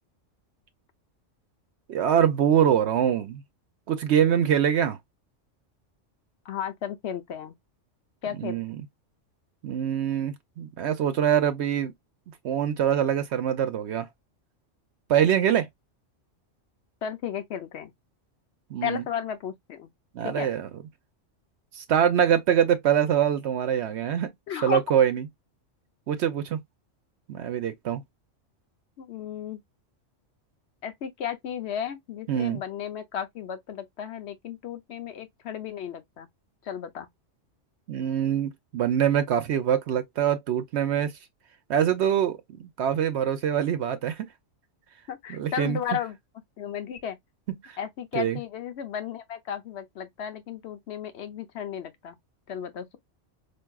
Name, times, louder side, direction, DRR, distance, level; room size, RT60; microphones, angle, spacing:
voice 1, 1.9-3.4 3.9-5.0 8.4-8.8 9.6-11.9 12.4-14.1 15.1-15.7 18.7-19.0 20.1-20.7 21.8-24.3 24.6-25.3 26.1-26.6 27.3-28.0 32.3-32.6 37.9-41.1 41.7-44.3 45.3-45.8 47.6-47.7 48.1-48.4, right 9 dB, 70° right, 0.9 m, -24 dB
voice 2, 6.4-7.5 8.2-8.6 17.0-17.9 18.8-19.9 20.2-20.5 24.5-24.8 29.0-29.6 30.8-36.3 36.6-37.1 45.1-46.2 46.6-47.2 47.8-52.2 52.5-53.0, left 8 dB, 65° left, 0.9 m, -34 dB
4.6 x 2.6 x 2.2 m
omnidirectional pair, 1.3 m